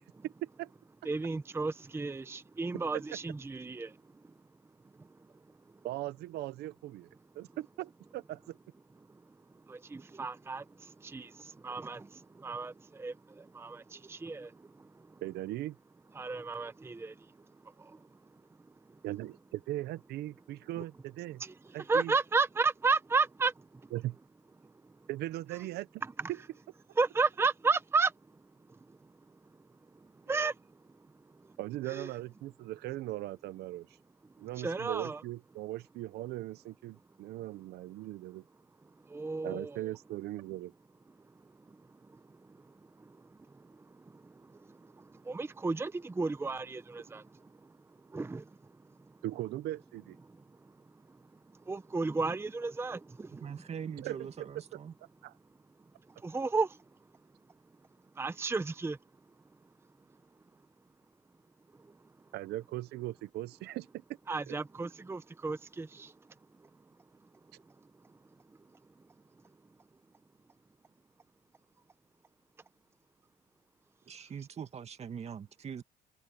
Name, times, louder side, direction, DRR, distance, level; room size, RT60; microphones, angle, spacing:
voice 1, 0.2-0.7 5.8-7.1 7.3-8.6 11.7-11.8 15.2-15.7 19.0-21.4 21.7-22.1 23.9-24.2 25.1-26.0 26.3-26.4 31.6-33.9 34.4-38.4 39.4-40.7 49.2-50.2 54.0-54.2 55.2-55.3 62.3-64.0 64.5-64.6, right 15 dB, 75° right, 0.8 m, -39 dB
voice 2, 1.0-4.0 9.7-14.5 16.1-17.1 17.8-18.0 20.8-20.9 21.4-23.5 26.0-26.3 27.0-28.1 30.3-30.5 31.9-32.1 34.6-35.2 39.1-39.8 44.1-44.3 44.7-47.2 48.1-48.5 51.7-53.6 56.2-56.8 58.2-59.0 64.3-66.1, right 4 dB, 15° right, 0.8 m, -33 dB
voice 3, 53.3-54.9 74.1-75.8, right 7 dB, 40° right, 1.9 m, -42 dB
cardioid pair, 110°, 17 cm